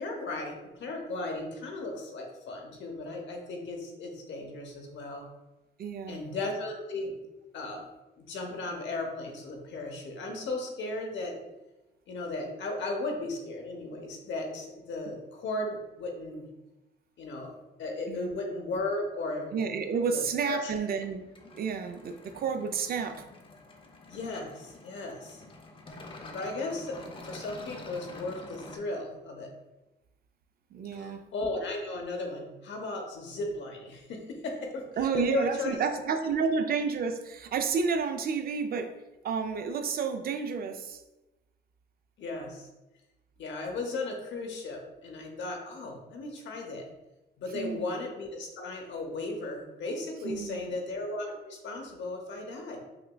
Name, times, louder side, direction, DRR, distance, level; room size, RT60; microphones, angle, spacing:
voice 1, 0.0-5.3 6.1-7.1 7.5-7.9 8.2-11.4 12.1-16.5 17.2-17.5 17.8-19.5 20.1-20.7 24.1-25.4 26.2-29.5 30.9-34.9 35.1-35.7 42.2-42.7 43.4-46.9 47.4-52.8, left 2 dB, 65° left, 2 dB, 0.8 m, -36 dB
voice 2, 5.8-6.2 18.1-18.4 19.5-21.3 21.5-23.2 30.7-31.2 35.0-39.0 39.2-41.0 47.5-47.9 50.2-50.7, right 5 dB, 50° right, 7 dB, 0.4 m, -30 dB
sound 1, 19.6-28.8, left 2 dB, 25° left, 0.5 m, -48 dB
5.8 x 2.2 x 2.2 m, 1.0 s
cardioid pair, 90°, 20 cm